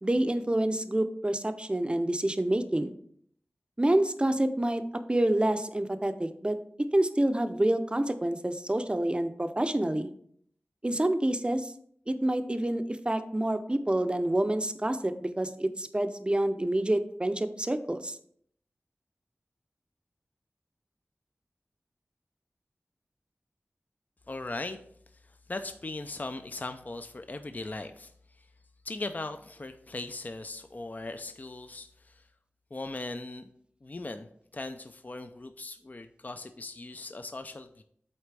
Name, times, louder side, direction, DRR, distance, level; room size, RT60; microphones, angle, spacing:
voice 1, 0.0-2.9 3.8-6.6 6.9-10.1 10.8-11.7 12.1-18.2, right 1 dB, 25° right, 9 dB, 0.6 m, -27 dB
voice 2, 24.3-24.8 25.2-28.1 28.4-28.5 28.8-32.3 32.7-33.5 33.8-34.3 34.5-37.8, left 2 dB, 40° left, 8 dB, 0.4 m, -39 dB
8.0 x 4.1 x 3.3 m, 0.64 s
wide cardioid pair, 50°, 4 cm